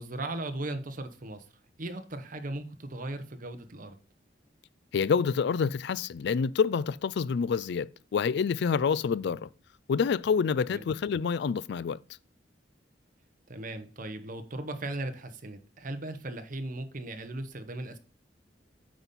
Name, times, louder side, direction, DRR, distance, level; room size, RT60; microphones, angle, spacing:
voice 1, 0.0-1.4 1.8-4.0 9.2-9.3 10.7-10.8 13.5-18.0, right 2 dB, 50° right, 1.0 m, -37 dB
voice 2, 4.9-9.5 9.9-12.0, left 6 dB, 65° left, 0.3 m, -27 dB
8.9 x 4.2 x 5.3 m
head